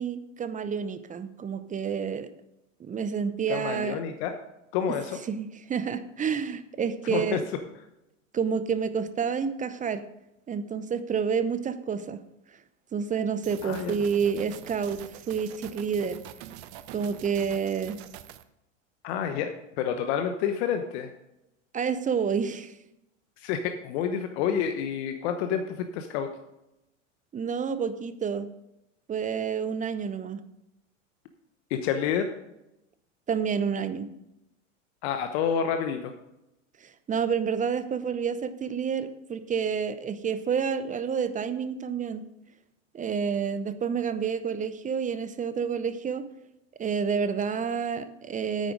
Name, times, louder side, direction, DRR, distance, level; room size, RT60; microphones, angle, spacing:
voice 1, 0.0-2.3 2.8-4.0 5.3-7.4 8.3-10.0 10.5-12.2 12.9-15.0 15.3-16.2 16.9-18.0 21.7-22.7 27.3-28.5 29.1-30.4 33.3-34.1 36.8-42.2 42.9-46.2 46.8-48.7, right 6 dB, 20° right, 12 dB, 0.7 m, -29 dB
voice 2, 3.5-4.4 4.7-5.2 7.0-7.4 13.6-14.0 19.0-19.5 19.8-21.1 23.4-26.3 31.7-32.3 35.0-36.1, left 8 dB, 60° left, 7 dB, 1.1 m, -28 dB
sound 1, 13.4-18.4, right 12 dB, 55° right, 0.9 m, -45 dB
9.4 x 9.0 x 5.0 m, 0.88 s
hypercardioid pair, 90°, 38 cm